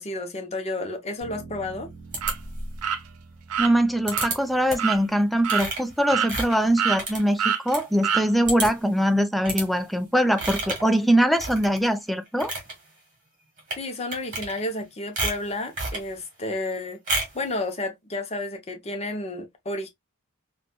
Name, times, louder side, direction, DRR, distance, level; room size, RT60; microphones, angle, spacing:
voice 1, 0.0-1.9 13.8-17.0 17.3-19.9, left 2 dB, 30° left, 0.7 m, -31 dB
Bass guitar, 1.2-5.6, right 3 dB, 15° right, 2.1 m, -47 dB
sound 1, 2.1-2.8 4.1-4.4 4.7-5.0 5.4-7.8 8.1-8.2 8.5-8.9 9.4-9.7 10.4-10.9 11.3-11.9 12.3-12.7 13.6-13.8 14.1-14.8 15.2-16.1 17.1-17.4, right 2 dB, 40° right, 1.4 m, -30 dB
sound 2, 2.2-2.3 2.8-3.0 3.5-3.7 4.1-4.3 4.8-5.0 5.4-5.7 6.1-6.5 6.8-7.0 7.4-7.6 8.0-8.3, right 8 dB, 85° right, 0.6 m, -25 dB
voice 2, 3.6-12.5, equal, ahead, 0.3 m, -22 dB
4.0 x 2.3 x 2.2 m
head